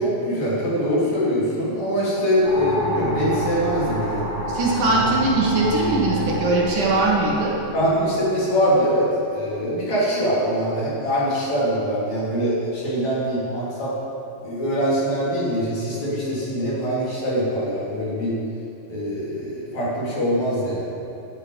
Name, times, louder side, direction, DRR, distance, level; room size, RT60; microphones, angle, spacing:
voice 1, 0.0-4.3 4.9-5.1 7.7-13.9 14.4-18.4 18.9-20.9, equal, 55° left, -8 dB, 4.8 m, -23 dB
sound 1, 2.4-8.9, right 1 dB, 5° left, 3.0 m, -29 dB
voice 2, 4.5-7.5, right 2 dB, 70° right, -4 dB, 3.2 m, -20 dB
11.0 x 8.1 x 8.9 m, 2.8 s
omnidirectional pair, 3.9 m